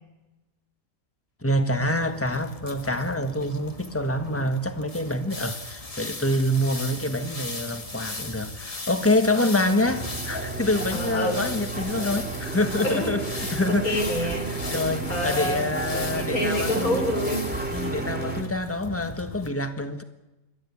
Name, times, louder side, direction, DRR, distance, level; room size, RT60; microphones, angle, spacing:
voice 1, 1.4-14.0 14.7-17.0 17.7-20.0, left 1 dB, 10° left, 1.4 m, -26 dB
sound 1, 1.7-19.5, left 2 dB, 25° left, 1.6 m, -38 dB
sound 2, 9.8-18.4, right 3 dB, 5° right, 2.0 m, -32 dB
voice 2, 10.9-11.4 12.8-14.7 15.1-17.5, left 1 dB, 75° left, 4.5 m, -28 dB
29.0 x 13.0 x 8.4 m
omnidirectional pair, 1.5 m